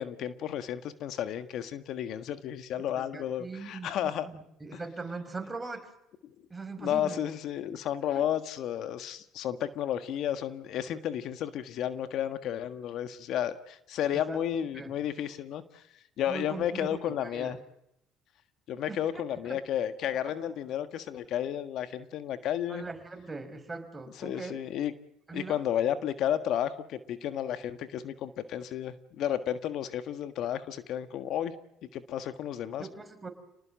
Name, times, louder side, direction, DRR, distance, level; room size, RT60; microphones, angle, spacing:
voice 1, 0.0-4.3 6.8-15.8 16.2-17.6 18.7-22.8 24.2-24.9 25.3-31.5 31.9-32.9, left 10 dB, 65° left, 11 dB, 1.5 m, -32 dB
voice 2, 2.9-5.9 6.5-7.2 8.1-8.2 14.1-14.4 14.7-14.9 16.3-17.6 18.9-19.0 19.4-19.6 22.7-24.6 25.3-25.6 32.8-33.3, right 3 dB, 20° right, 7 dB, 5.2 m, -41 dB
29.0 x 19.5 x 7.7 m, 0.80 s
hypercardioid pair, 70°, 0 cm